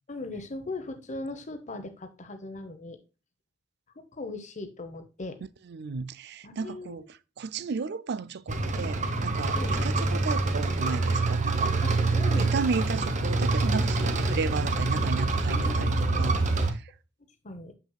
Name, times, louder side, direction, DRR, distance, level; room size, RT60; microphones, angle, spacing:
voice 1, 0.1-3.0 4.0-5.4 6.4-7.1 9.5-9.8 11.8-12.9 15.5-16.3 17.4-17.7, left 2 dB, 40° left, 0.9 m, -39 dB
voice 2, 5.6-7.0 7.4-11.8 12.2-16.4 16.7-16.9, right 4 dB, 60° right, 0.5 m, -33 dB
sound 1, 8.5-16.7, right 2 dB, 40° right, 0.9 m, -26 dB
7.1 x 5.9 x 2.3 m
head